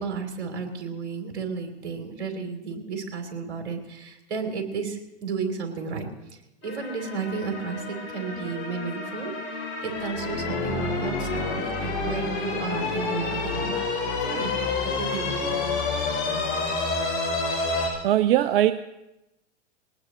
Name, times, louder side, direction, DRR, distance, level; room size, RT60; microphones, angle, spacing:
voice 1, 0.0-6.1 6.6-13.8 14.2-14.6 14.8-15.6, right 5 dB, 70° right, 4 dB, 3.4 m, -33 dB
sound 1, 6.6-17.9, left 3 dB, 40° left, 6.8 m, -29 dB
voice 2, 18.0-18.7, right 13 dB, 50° right, 13 dB, 0.7 m, -20 dB
21.5 x 18.5 x 3.1 m, 0.94 s
hypercardioid pair, 105°, 34 cm